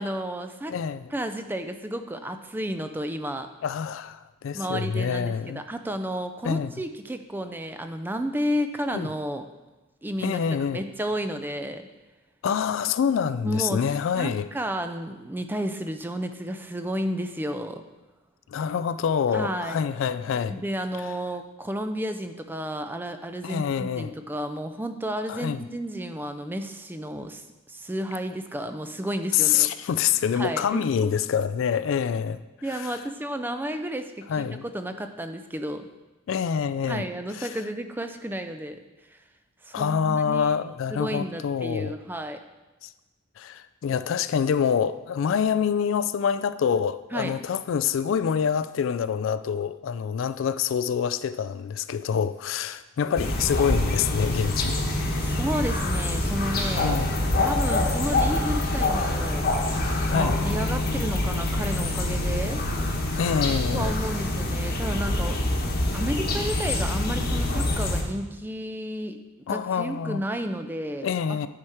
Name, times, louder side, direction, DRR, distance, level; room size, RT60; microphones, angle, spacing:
voice 1, 0.0-0.8 1.1-3.5 4.5-9.5 10.0-10.4 10.7-11.9 13.4-13.8 14.2-17.8 19.3-19.8 20.5-29.7 30.3-30.8 32.6-35.9 36.9-38.8 39.6-40.5 40.9-42.4 47.1-47.4 55.2-57.0 57.4-62.6 63.7-65.7 65.9-69.2 69.5-71.5, right 1 dB, 10° right, 0.4 m, -32 dB
voice 2, 0.7-1.1 3.6-5.6 6.4-6.7 8.9-9.1 10.2-10.8 12.4-14.5 18.5-20.6 23.4-24.1 25.3-25.6 29.3-32.4 32.7-32.9 34.3-34.6 36.3-37.1 37.3-37.6 39.7-41.9 42.8-42.9 43.4-54.8 56.8-57.4 60.1-60.4 63.2-63.9 69.5-70.2 71.0-71.5, left 7 dB, 65° left, 0.3 m, -26 dB
sound 1, 53.2-68.0, left 1 dB, 50° left, 1.1 m, -25 dB
9.7 x 4.8 x 4.4 m
head